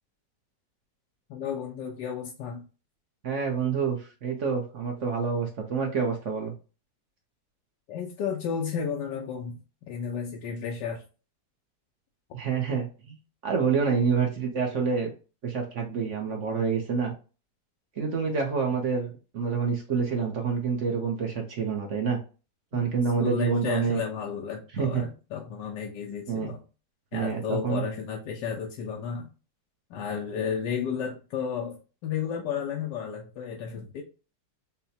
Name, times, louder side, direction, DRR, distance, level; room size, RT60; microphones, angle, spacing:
voice 1, 1.3-2.6 7.9-9.6 9.9-11.0 22.7-26.6 27.1-29.3 29.9-34.0, left 7 dB, 80° left, 0 dB, 1.3 m, -32 dB
voice 2, 3.2-6.5 12.3-13.2 13.4-15.1 15.4-17.1 18.0-22.2 22.7-24.0 24.7-25.0 26.3-26.5 27.1-27.8, right 5 dB, 55° right, 2 dB, 0.9 m, -27 dB
5.6 x 2.2 x 2.7 m, 0.34 s
omnidirectional pair, 1.9 m